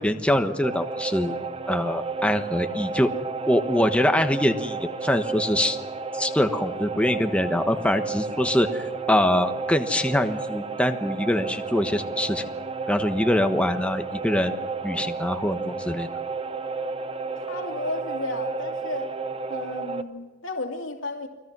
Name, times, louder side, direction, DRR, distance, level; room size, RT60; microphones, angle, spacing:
voice 1, 0.0-1.4 1.7-3.1 3.5-5.8 6.1-12.4 12.9-14.5 14.8-16.1, left 1 dB, 5° left, 6 dB, 1.2 m, -24 dB
sound 1, 0.6-20.0, right 4 dB, 30° right, 0.9 m, -32 dB
voice 2, 17.4-19.1 19.5-21.3, left 2 dB, 80° left, 3 dB, 2.7 m, -33 dB
29.5 x 21.0 x 6.2 m, 1.3 s
head